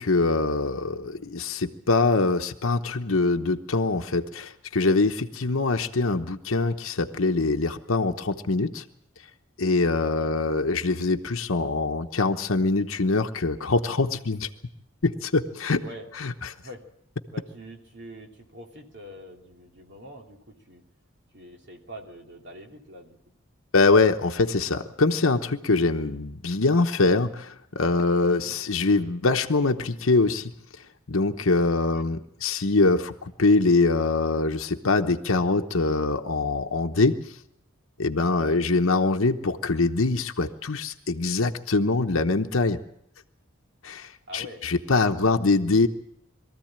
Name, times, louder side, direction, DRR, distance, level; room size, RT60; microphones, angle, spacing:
voice 1, 0.0-8.8 9.6-14.5 15.0-15.8 16.2-16.5 23.7-30.5 31.1-37.2 38.0-42.8 43.8-45.9, left 3 dB, 75° left, 5 dB, 1.0 m, -23 dB
voice 2, 17.3-20.8 21.3-23.2 28.4-28.6 31.9-32.0 38.4-38.6 44.3-44.6 44.9-45.3, equal, 55° right, 2 dB, 3.0 m, -44 dB
22.5 x 14.5 x 8.9 m, 0.75 s
head